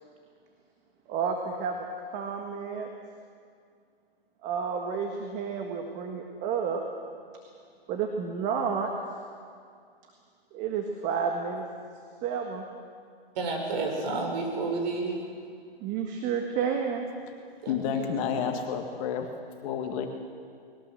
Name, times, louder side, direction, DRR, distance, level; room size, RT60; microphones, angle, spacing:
voice 1, 1.1-2.9 4.4-6.8 7.9-9.2 10.5-11.7 12.2-12.7 15.8-17.1, right 6 dB, 25° right, 3 dB, 1.7 m, -31 dB
voice 2, 13.3-15.2 17.6-18.4, right 3 dB, 45° right, 1 dB, 6.2 m, -31 dB
voice 3, 17.7-19.3 19.6-20.1, left 7 dB, 35° left, 4 dB, 1.9 m, -30 dB
21.0 x 18.5 x 7.7 m, 2.2 s
hypercardioid pair, 140°, 30 cm